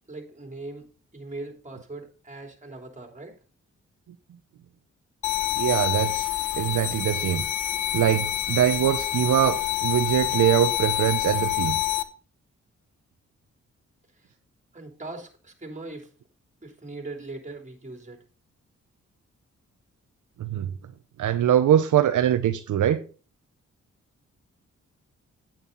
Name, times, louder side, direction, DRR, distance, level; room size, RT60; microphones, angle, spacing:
voice 1, 0.1-3.4 14.1-14.3 14.7-16.1 16.6-18.2, right 2 dB, 25° right, 3.4 m, -40 dB
sound 1, 5.2-12.0, left 14 dB, 80° left, 1.0 m, -27 dB
voice 2, 5.6-6.3 6.5-7.4 7.9-11.8 20.4-20.7 21.2-23.0, right 11 dB, 80° right, 0.8 m, -23 dB
9.2 x 9.1 x 4.1 m
cardioid pair, 70°, 30 cm